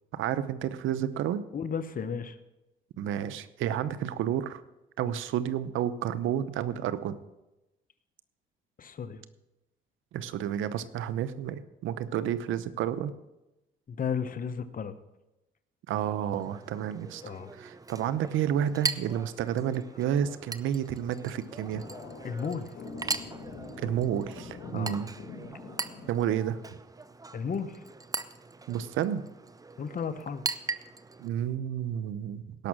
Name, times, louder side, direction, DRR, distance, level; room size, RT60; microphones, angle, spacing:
voice 1, 0.1-1.5 3.0-4.6 5.0-7.2 10.1-13.1 15.9-21.8 23.8-25.1 26.1-26.6 28.7-29.2 31.2-32.7, right 10 dB, 85° right, 14 dB, 0.7 m, -30 dB
voice 2, 1.5-2.4 8.8-9.2 13.9-15.0 17.2-17.5 22.2-22.7 24.7-25.0 27.3-27.8 29.8-30.4, left 6 dB, 45° left, 11 dB, 1.0 m, -34 dB
Chink clink, 16.3-31.3, right 3 dB, 20° right, 0.6 m, -40 dB
sound 1, 21.2-26.1, left 3 dB, 75° left, 2.4 m, -44 dB
17.5 x 6.1 x 6.1 m, 0.97 s
cardioid pair, 90°, 20 cm